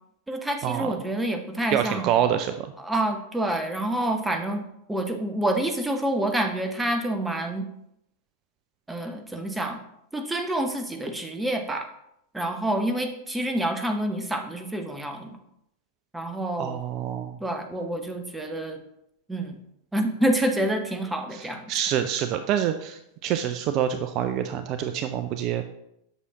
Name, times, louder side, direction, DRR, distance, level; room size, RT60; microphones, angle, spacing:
voice 1, 0.3-2.1 2.8-7.7 8.9-9.8 10.1-11.9 12.3-15.4 16.1-16.8 17.4-18.8 19.3-19.6 19.9-21.7, right 1 dB, 5° right, 5 dB, 0.9 m, -28 dB
voice 2, 1.7-2.7 16.6-17.4 21.3-21.4 21.7-25.6, right 10 dB, 40° right, 8 dB, 0.4 m, -26 dB
8.1 x 6.2 x 2.9 m, 0.77 s
figure-of-eight pair, 90°, 0 cm